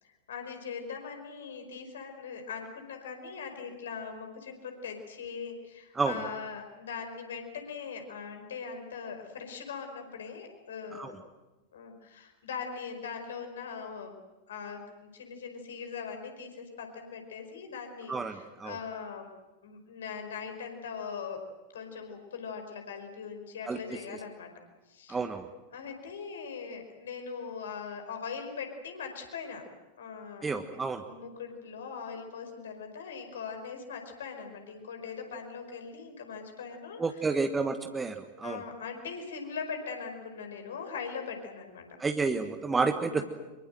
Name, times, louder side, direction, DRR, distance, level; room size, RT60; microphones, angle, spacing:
voice 1, 0.0-11.2 11.7-14.2 14.5-14.8 15.1-19.3 19.6-21.4 21.7-24.5 24.9-25.2 25.7-29.7 30.0-30.7 31.0-37.4 38.4-41.9 43.0-43.2, left 6 dB, 65° left, 5 dB, 5.1 m, -41 dB
voice 2, 18.1-18.8 23.7-23.8 25.1-25.5 30.4-31.0 37.0-38.6 42.0-43.2, right 4 dB, 15° right, 6 dB, 1.4 m, -30 dB
25.0 x 23.0 x 7.9 m, 1.1 s
figure-of-eight pair, 90°, 0 cm